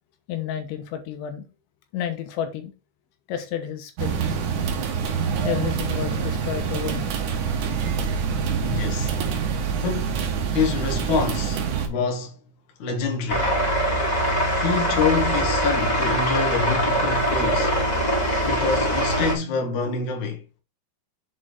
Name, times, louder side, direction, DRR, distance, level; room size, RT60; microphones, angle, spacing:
voice 1, 0.3-1.5 1.9-2.7 3.3-4.2 5.4-7.1, left 9 dB, 80° left, 3.3 m, -31 dB
sound 1, 4.0-11.9, right 6 dB, 75° right, 1.7 m, -26 dB
voice 2, 8.6-9.1 9.8-12.3 12.8-13.6 14.6-17.7 18.4-20.4, left 5 dB, 55° left, 2.5 m, -26 dB
sound 2, 13.3-19.4, equal, 10° left, 2.0 m, -22 dB
7.4 x 4.5 x 4.7 m
omnidirectional pair, 5.3 m